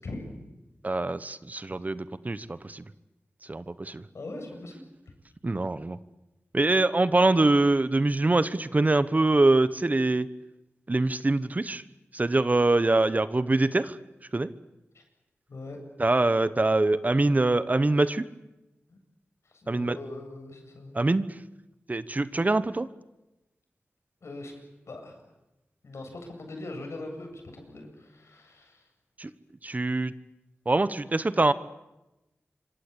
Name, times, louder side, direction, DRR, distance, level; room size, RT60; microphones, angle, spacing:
voice 1, 0.8-2.8 3.5-4.0 5.4-6.0 6.5-10.3 10.9-11.8 12.1-14.0 14.3-14.5 16.0-18.3 19.7-20.0 20.9-21.3 21.9-22.9 29.2-29.3 29.6-30.1 30.7-31.5, right 2 dB, 35° right, 14 dB, 1.1 m, -24 dB
voice 2, 4.1-4.8 14.9-15.0 15.5-15.8 18.9-19.0 19.4-20.9 24.2-24.5 24.9-25.2 25.8-28.8, left 2 dB, 75° left, 3 dB, 7.9 m, -41 dB
27.0 x 25.0 x 8.5 m, 0.96 s
wide cardioid pair, 70°, 5 cm